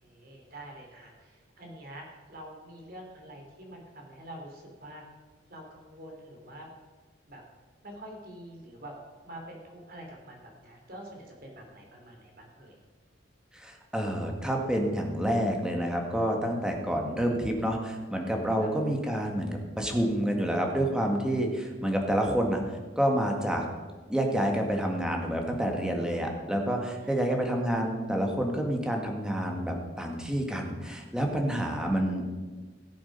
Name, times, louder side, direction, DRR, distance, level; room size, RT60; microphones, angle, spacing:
voice 1, 0.0-5.1 5.5-6.7 7.3-7.4 7.8-8.9 9.2-12.8 27.0-27.4, right 1 dB, 55° right, 1 dB, 3.3 m, -46 dB
voice 2, 13.5-22.6 23.0-23.6 24.1-32.3, equal, 5° right, 1 dB, 1.7 m, -28 dB
17.5 x 7.7 x 5.5 m, 1.4 s
head